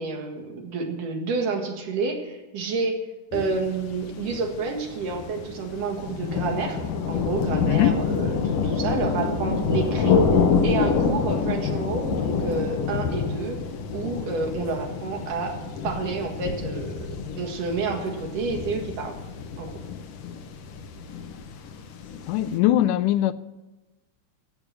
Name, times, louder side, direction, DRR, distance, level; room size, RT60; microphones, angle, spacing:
voice 1, 0.0-3.0 3.3-6.8 7.1-13.6 13.9-15.6 15.8-17.1 17.4-19.1 19.6-19.7, right 4 dB, 85° right, 3.5 m, -29 dB
sound 1, 3.3-22.5, left 5 dB, 65° left, 1.7 m, -27 dB
voice 2, 22.3-23.3, left 13 dB, 85° left, 2.1 m, -21 dB
13.5 x 8.6 x 7.5 m
omnidirectional pair, 3.6 m